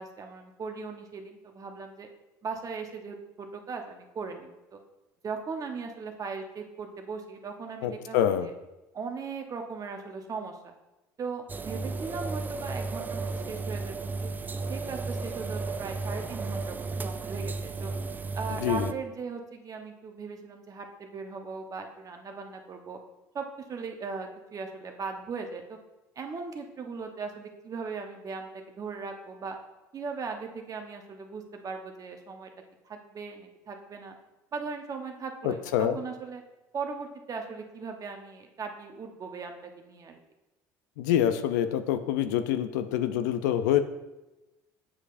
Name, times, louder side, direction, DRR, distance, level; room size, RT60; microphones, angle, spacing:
voice 1, 0.0-2.1 2.4-4.8 5.2-8.5 8.9-10.7 11.2-14.3 14.7-17.9 18.3-23.0 23.3-25.8 26.2-29.6 29.9-32.5 32.8-34.1 34.5-36.4 36.7-40.2, right 5 dB, 40° right, 4 dB, 1.0 m, -38 dB
voice 2, 7.8-8.5 18.6-18.9 35.4-36.0 41.0-43.8, left 10 dB, 85° left, 10 dB, 0.5 m, -26 dB
sound 1, 11.5-18.9, right 3 dB, 20° right, 0.3 m, -34 dB
7.3 x 6.4 x 2.5 m, 1.0 s
supercardioid pair, 80°, 10 cm